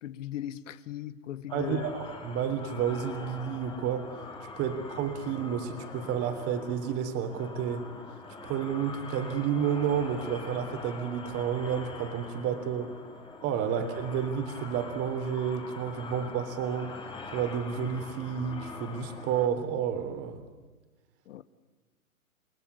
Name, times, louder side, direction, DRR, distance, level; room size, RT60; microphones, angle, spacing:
voice 1, 0.0-1.9 4.7-4.8 21.3-21.4, left 11 dB, 60° left, 1.4 m, -38 dB
sound 1, 1.5-19.5, left 4 dB, 10° left, 3.0 m, -44 dB
voice 2, 1.5-4.1 4.6-7.9 8.4-12.9 13.4-17.0 17.3-20.4, right 8 dB, 30° right, 3.4 m, -31 dB
29.5 x 20.5 x 9.8 m
hypercardioid pair, 125°, 43 cm